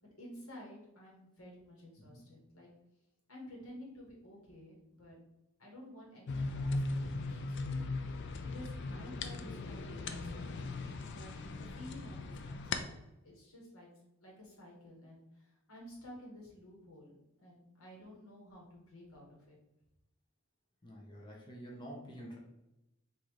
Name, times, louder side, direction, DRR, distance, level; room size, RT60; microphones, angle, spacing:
voice 1, 0.0-2.7 3.3-5.2 5.6-10.6 11.1-13.0 13.2-13.9 14.2-19.6, left 1 dB, 80° left, -2 dB, 1.6 m, -53 dB
sound 1, 6.3-12.8, left 3 dB, 55° left, 0.4 m, -38 dB
voice 2, 20.8-22.4, equal, 20° left, -2 dB, 0.8 m, -48 dB
3.8 x 2.8 x 4.6 m, 0.92 s
head